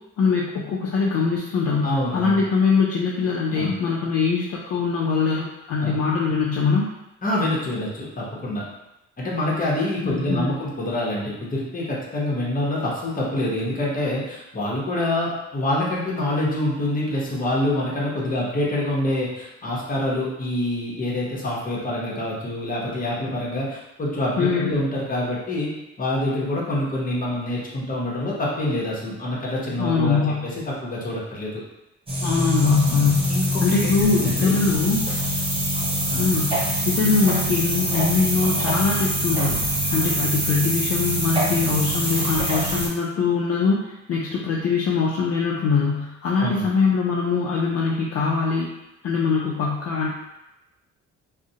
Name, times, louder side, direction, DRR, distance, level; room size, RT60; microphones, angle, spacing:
voice 1, 0.2-6.9 10.0-10.6 24.4-24.7 29.8-30.5 32.2-33.3 33.6-35.1 36.2-36.6 36.8-48.8 49.0-50.1, left 5 dB, 55° left, -3 dB, 0.4 m, -22 dB
voice 2, 1.8-2.4 3.5-3.8 5.8-6.0 7.2-8.6 9.2-25.7 26.0-31.6 32.9-34.6 36.1-36.3 46.4-46.7, left 1 dB, 30° left, -4 dB, 0.8 m, -26 dB
sound 1, 32.1-42.9, equal, 20° right, 0.6 m, -24 dB
2.4 x 2.0 x 2.7 m, 0.95 s
cardioid pair, 90°, 30 cm